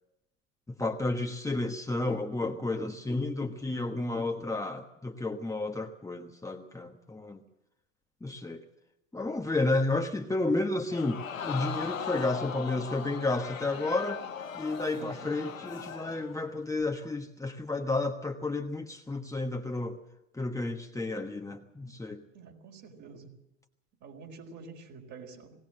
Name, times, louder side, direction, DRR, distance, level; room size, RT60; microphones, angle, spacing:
voice 1, 0.8-7.4 8.2-8.6 9.1-14.2 14.5-20.0 20.3-22.2, left 2 dB, 10° left, 3 dB, 1.2 m, -31 dB
Crowd, 10.9-16.4 16.8-16.9, left 7 dB, 90° left, 1.3 m, -39 dB
voice 2, 14.9-15.3 21.8-22.0 22.3-23.3 24.0-25.5, right 4 dB, 45° right, 2 dB, 4.5 m, -48 dB
20.0 x 18.0 x 7.7 m, 0.86 s
hypercardioid pair, 80°, 39 cm